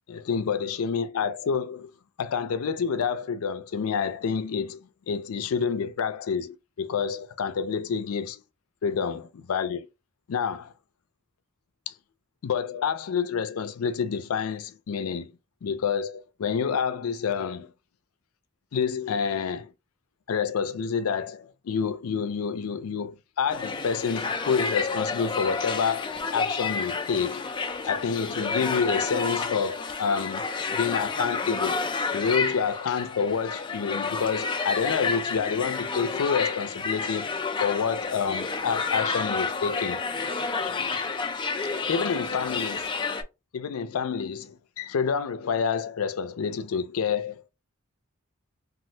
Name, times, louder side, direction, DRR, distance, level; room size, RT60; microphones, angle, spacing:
voice 1, 0.1-1.9 2.2-8.4 8.8-9.9 10.3-10.7 11.9-12.0 12.4-15.3 15.6-17.7 18.7-19.7 20.3-27.4 27.8-30.4 30.7-31.8 32.1-37.3 37.6-40.3 40.6-41.1 41.9-42.9 43.5-47.5, left 6 dB, 90° left, 0.4 m, -28 dB
sound 1, 23.5-43.2, left 4 dB, 20° left, 0.3 m, -30 dB
3.2 x 2.4 x 2.7 m
head